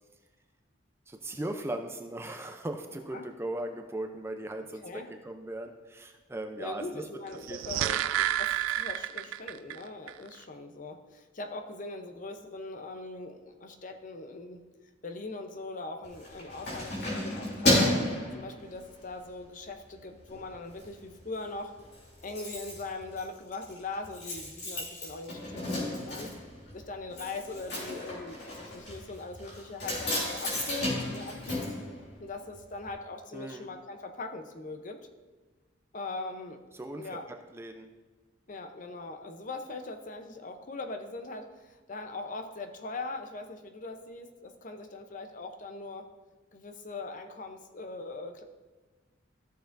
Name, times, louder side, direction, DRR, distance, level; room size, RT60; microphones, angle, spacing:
voice 1, 1.1-4.8 5.2-7.0 7.5-8.0 33.3-33.7 36.7-37.1 37.5-37.9, right 1 dB, 15° right, 5 dB, 0.5 m, -38 dB
voice 2, 6.6-14.6 15.0-18.0 18.3-21.8 22.2-26.3 26.7-31.6 32.2-35.0 35.9-36.6 36.9-37.3 38.5-46.1 46.5-48.4, left 3 dB, 40° left, 6 dB, 0.7 m, -41 dB
sound 1, 7.3-9.8 10.1-10.2, right 12 dB, 85° right, 0.3 m, -30 dB
Keys jangling, 16.0-19.1 19.6-19.8 20.2-20.9 21.1-21.2 21.5-21.6 21.8-32.6 32.9-33.0, left 1 dB, 55° left, 3.0 m, -33 dB
14.0 x 6.7 x 2.6 m, 1.2 s
head